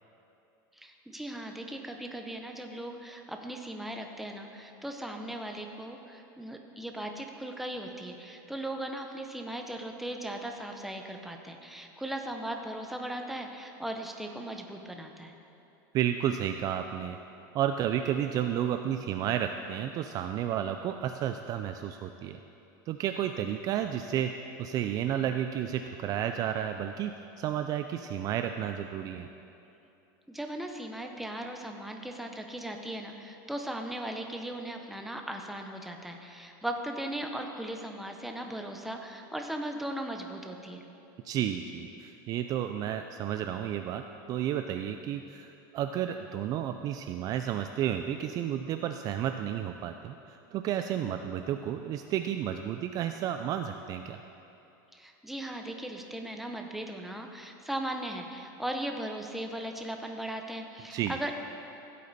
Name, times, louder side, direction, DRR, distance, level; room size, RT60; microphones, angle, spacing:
voice 1, 0.7-15.4 30.3-40.8 54.9-61.3, right 1 dB, ahead, 3 dB, 0.7 m, -38 dB
voice 2, 15.9-17.2 17.5-22.4 22.9-24.3 24.6-29.3 41.2-44.0 44.3-54.2 60.9-61.2, right 10 dB, 35° right, 7 dB, 0.3 m, -32 dB
15.0 x 8.4 x 4.1 m, 2.8 s
supercardioid pair, 145°, 11 cm